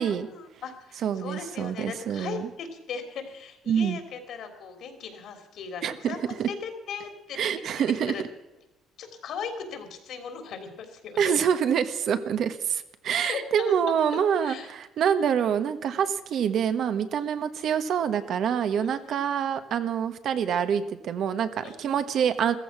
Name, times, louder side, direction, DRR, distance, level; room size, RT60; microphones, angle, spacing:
voice 1, 0.1-6.2 6.4-8.2 9.0-11.4 13.2-13.9 14.4-14.7 17.4-17.5 21.6-22.0, left 6 dB, 65° left, 6 dB, 3.4 m, -38 dB
voice 2, 1.0-2.5 3.7-4.0 5.8-6.5 7.3-8.1 11.2-22.5, right 8 dB, 65° right, 10 dB, 1.3 m, -26 dB
15.5 x 14.5 x 6.1 m, 0.99 s
cardioid pair, 115°, 0 cm